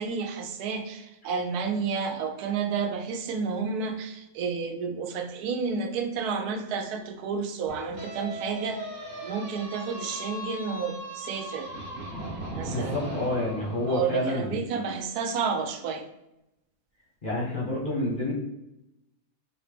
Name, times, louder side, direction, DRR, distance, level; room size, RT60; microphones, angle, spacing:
voice 1, 0.0-8.9 9.2-11.7 12.5-13.0 13.9-16.0, right 5 dB, 85° right, 5 dB, 1.1 m, -31 dB
sound 1, 7.7-13.9, equal, 55° right, 1.4 m, -38 dB
voice 2, 12.6-14.6 17.2-18.3, left 1 dB, 50° left, -4 dB, 0.7 m, -29 dB
4.8 x 2.1 x 3.3 m, 0.90 s
omnidirectional pair, 1.6 m